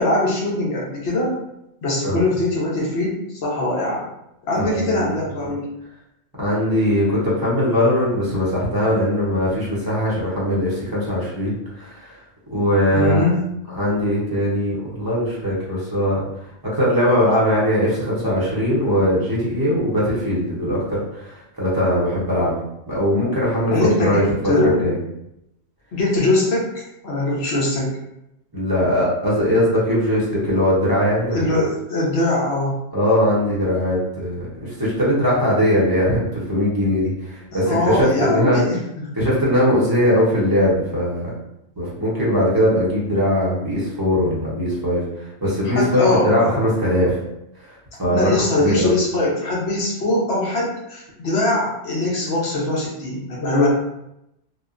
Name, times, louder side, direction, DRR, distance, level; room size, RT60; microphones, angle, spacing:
voice 1, 0.0-1.3 1.8-3.1 3.4-4.0 4.4-5.7 12.9-13.4 23.7-24.9 25.9-27.9 31.3-32.8 37.5-39.1 45.6-46.5 48.1-53.7, left 2 dB, 75° left, -3 dB, 1.1 m, -21 dB
voice 2, 4.6-5.1 6.4-12.2 12.5-13.2 13.7-16.2 16.6-22.5 22.9-23.7 24.0-24.2 24.6-25.0 28.5-31.5 32.9-38.6 39.2-41.3 41.8-47.2 47.6-48.3 48.6-48.9, equal, 25° right, -7 dB, 0.7 m, -20 dB
2.8 x 2.1 x 2.4 m, 0.84 s
omnidirectional pair, 1.1 m